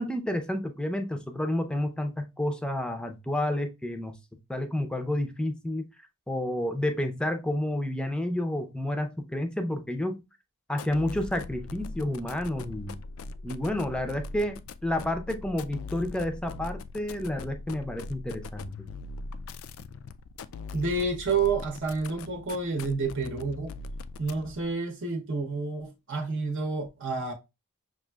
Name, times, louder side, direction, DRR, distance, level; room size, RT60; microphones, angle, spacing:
voice 1, 0.0-4.2 4.5-5.9 6.3-10.2 10.7-13.0 13.4-18.9, left 1 dB, 5° left, 0.5 m, -30 dB
sound 1, 10.7-24.7, left 3 dB, 70° left, 0.3 m, -41 dB
voice 2, 20.7-23.7 24.2-27.3, right 4 dB, 60° right, 0.8 m, -29 dB
6.0 x 2.4 x 2.3 m
head